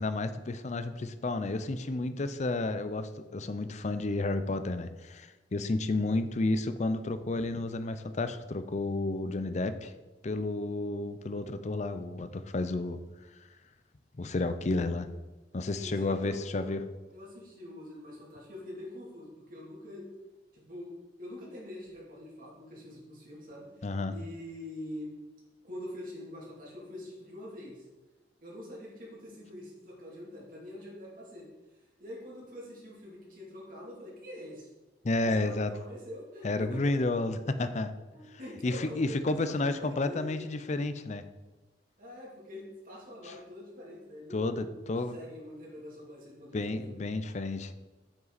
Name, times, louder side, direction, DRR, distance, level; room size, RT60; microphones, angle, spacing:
voice 1, 0.0-9.9 10.2-13.0 14.2-15.1 15.5-16.8 23.8-24.1 35.0-35.7 36.4-37.9 38.6-41.2 43.2-43.4 44.3-45.1 46.5-47.7, left 2 dB, 40° left, 10 dB, 0.5 m, -31 dB
voice 2, 15.8-16.7 17.1-20.1 20.5-20.9 21.2-25.1 25.6-27.8 28.4-31.5 32.0-34.7 35.2-36.9 38.1-40.4 42.0-46.9, left 1 dB, 50° right, -5 dB, 2.8 m, -45 dB
9.1 x 5.7 x 4.1 m, 1.1 s
head